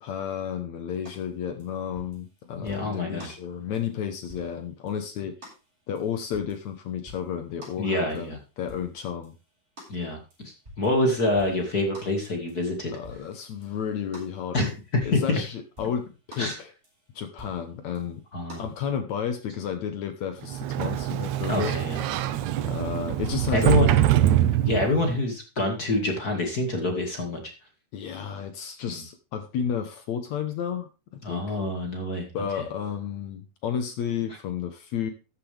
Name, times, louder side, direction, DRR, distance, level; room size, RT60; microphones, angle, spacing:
voice 1, 0.0-5.3 5.9-9.4 12.9-14.7 15.1-16.7 17.2-18.2 18.6-21.8 22.6-23.9 27.9-30.9 31.3-31.6 32.3-35.1, left 8 dB, 65° left, 8 dB, 1.9 m, -32 dB
sound 1, 1.1-1.2 1.6-2.3 2.7-2.9 3.2-3.4 3.7-3.9 4.3-4.6 4.9-5.0 5.4-5.6 6.0-6.7 7.1-7.3 7.6-7.8 8.2-8.3 8.7-9.0 9.2-9.4 9.8-10.0 10.3-11.0 11.4-11.7 11.9-12.2 12.5-12.7 13.0-14.4 14.7-15.4 15.8-16.1 16.3-16.6 16.8-17.0 17.4-17.7 17.9-18.1 18.5-18.8, left 1 dB, 15° right, 6.1 m, -47 dB
voice 2, 2.6-3.3 7.8-8.4 9.9-12.9 14.5-15.4 16.4-16.6 18.3-18.6 21.5-22.0 23.5-24.0 24.7-27.4 28.9-29.0 31.2-32.3, left 2 dB, 35° left, 3 dB, 1.8 m, -26 dB
Sliding door, 20.5-25.2, right 12 dB, 90° right, 1.6 m, -24 dB
13.5 x 9.8 x 3.4 m, 0.31 s
omnidirectional pair, 4.3 m